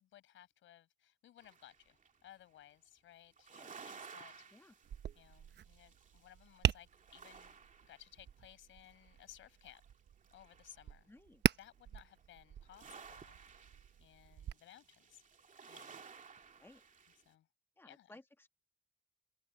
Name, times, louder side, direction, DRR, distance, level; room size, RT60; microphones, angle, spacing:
voice 1, 0.0-4.5 5.2-9.8 10.3-11.1 11.6-13.4 14.0-15.2 15.7-16.0 17.3-17.5 17.9-18.2, left 12 dB, 80° left, 5.1 m, -60 dB
sound 1, 1.4-2.2 3.3-6.6 6.9-8.5 8.8-10.9 12.0-12.2 12.6-17.3, right 5 dB, 40° right, 2.6 m, -56 dB
Tap, 4.8-14.5, right 10 dB, 60° right, 1.0 m, -41 dB
voice 2, 11.1-11.4 16.6-16.8 17.8-18.5, left 2 dB, 10° left, 1.7 m, -59 dB
open air
cardioid pair, 90°, 20 cm